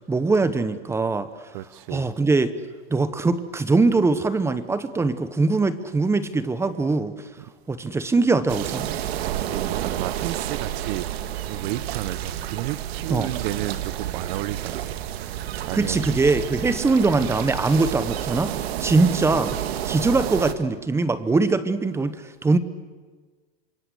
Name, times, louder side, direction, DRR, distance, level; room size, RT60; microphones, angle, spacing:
voice 1, 0.1-1.3 1.9-2.5 2.9-7.1 7.7-8.9 13.1-13.3 15.7-18.5 18.8-19.6 19.8-22.6, right 3 dB, 10° right, 1.0 m, -22 dB
voice 2, 1.5-2.1 7.4-7.5 9.2-16.1, right 15 dB, 50° right, 1.0 m, -33 dB
sound 1, 8.5-20.5, right 11 dB, 70° right, 1.9 m, -30 dB
27.5 x 22.5 x 8.0 m
supercardioid pair, 150°, 32 cm